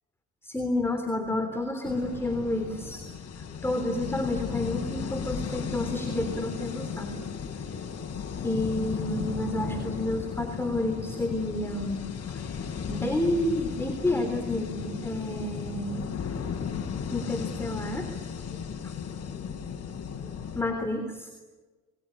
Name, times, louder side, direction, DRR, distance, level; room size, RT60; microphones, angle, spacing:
voice 1, 0.4-3.1 3.4-7.2 7.5-7.6 8.4-12.0 12.3-16.1 17.1-18.1 18.8-18.9 20.6-21.3, left 1 dB, 10° left, 5 dB, 3.4 m, -30 dB
sound 1, 1.8-20.6, left 6 dB, 55° left, 4.4 m, -35 dB
28.0 x 21.0 x 9.9 m, 1.3 s
cardioid pair, 90°, 30 cm